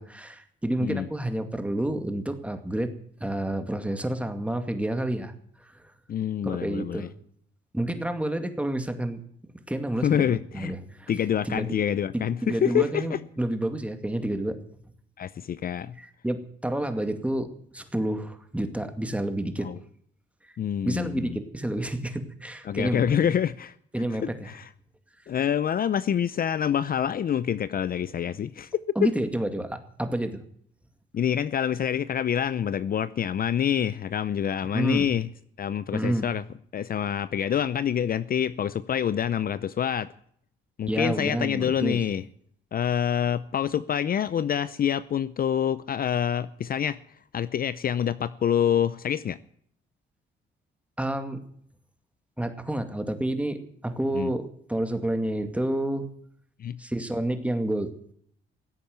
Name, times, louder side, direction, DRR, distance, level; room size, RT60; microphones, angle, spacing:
voice 1, 0.0-2.9 3.2-5.3 5.6-5.8 6.4-7.1 7.7-9.2 9.7-11.1 11.4-11.8 12.1-14.6 16.0-17.5 17.7-19.7 20.8-23.2 23.9-24.5 29.0-30.4 34.6-35.1 35.9-36.3 40.9-42.0 51.0-51.4 52.4-56.1 56.8-57.9, right 1 dB, 5° right, 2.2 m, -29 dB
voice 2, 6.1-7.1 10.0-10.7 11.1-13.2 15.2-16.0 19.6-19.8 20.6-21.4 22.7-23.7 24.2-24.7 25.3-28.7 29.0-29.1 31.1-35.3 35.6-36.4 36.7-40.1 40.8-42.2 42.7-47.0 47.3-49.4 54.1-54.3 56.6-56.8, left 9 dB, 45° left, 0.6 m, -26 dB
16.5 x 8.5 x 9.4 m
cardioid pair, 90°, 20 cm